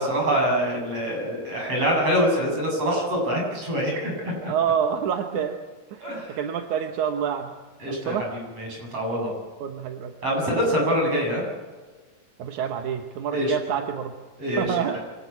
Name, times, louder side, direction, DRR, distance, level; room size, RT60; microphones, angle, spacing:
voice 1, 0.0-4.5 6.0-6.4 7.8-9.3 10.2-11.4 13.3-13.5 14.4-15.0, equal, 40° right, 0 dB, 8.6 m, -25 dB
voice 2, 4.5-5.5 5.9-7.5 7.9-8.3 9.6-10.5 12.4-14.1 14.6-15.0, right 8 dB, 65° right, 5 dB, 2.3 m, -27 dB
25.0 x 18.5 x 8.4 m, 1.4 s
omnidirectional pair, 4.3 m